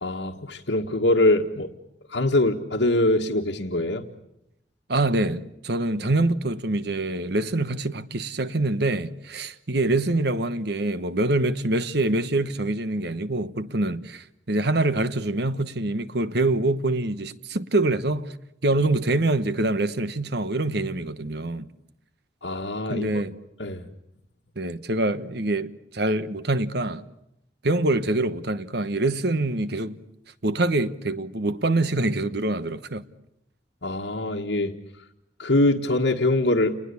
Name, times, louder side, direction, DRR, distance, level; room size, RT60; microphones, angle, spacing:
voice 1, 0.0-1.7 2.1-4.0 22.4-23.1 23.6-23.8 33.8-34.7 35.4-36.8, left 2 dB, 75° left, 1.7 m, -23 dB
voice 2, 4.9-18.3 18.6-21.7 22.9-23.4 24.6-27.0 27.6-30.0 30.4-33.0, right 2 dB, 60° right, 1.2 m, -25 dB
29.5 x 20.5 x 8.5 m
head